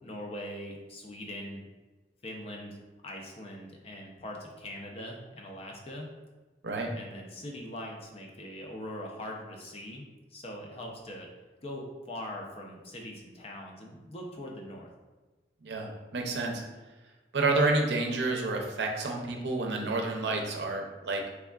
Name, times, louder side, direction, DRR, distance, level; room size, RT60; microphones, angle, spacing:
voice 1, 0.0-1.6 2.2-6.1 6.9-11.3 11.6-14.9, left 1 dB, 35° left, 0 dB, 0.5 m, -42 dB
voice 2, 15.6-16.6 17.3-21.2, right 2 dB, 75° right, 1 dB, 0.6 m, -29 dB
3.4 x 3.4 x 2.3 m, 1.2 s
head